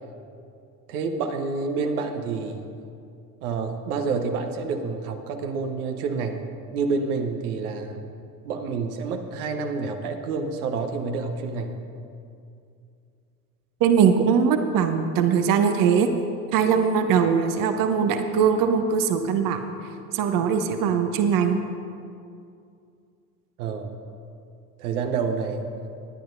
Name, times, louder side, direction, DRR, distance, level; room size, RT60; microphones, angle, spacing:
voice 1, 0.9-2.6 3.4-6.4 6.7-8.0 8.4-11.8 23.6-24.0 24.8-25.7, right 4 dB, 65° right, 5 dB, 1.1 m, -28 dB
voice 2, 13.8-16.1 16.5-19.6 20.1-21.6, right 7 dB, 45° right, 7 dB, 1.0 m, -21 dB
20.0 x 10.5 x 2.6 m, 2.5 s
figure-of-eight pair, 65°, 47 cm